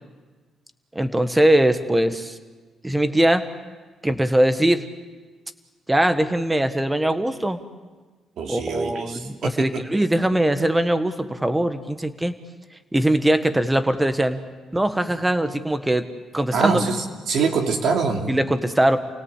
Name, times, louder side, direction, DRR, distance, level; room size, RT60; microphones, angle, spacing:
voice 1, 0.9-2.3 2.8-3.5 4.0-4.8 5.9-7.6 8.5-12.3 12.9-14.4 14.7-16.0 16.3-16.8 18.3-19.0, right 1 dB, 10° right, 10 dB, 1.6 m, -21 dB
voice 2, 8.4-9.9 16.5-18.3, right 4 dB, 70° right, 2 dB, 3.0 m, -24 dB
29.0 x 18.0 x 8.5 m, 1.4 s
cardioid pair, 90°, 0 cm